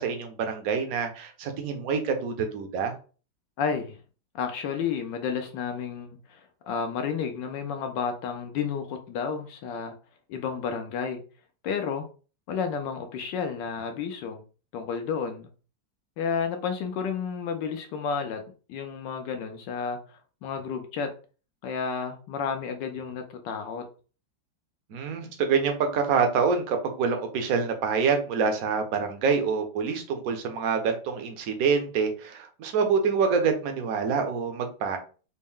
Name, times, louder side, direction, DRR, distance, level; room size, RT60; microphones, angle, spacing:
voice 1, 0.0-2.9 24.9-35.0, right 5 dB, 65° right, 5 dB, 0.9 m, -26 dB
voice 2, 3.6-4.0 4.3-9.9 10.3-11.2 11.6-12.1 12.5-14.4 14.7-15.5 16.2-18.4 18.7-21.1 21.6-23.8, left 6 dB, 75° left, 6 dB, 1.1 m, -31 dB
4.3 x 2.0 x 3.6 m, 0.37 s
omnidirectional pair, 2.2 m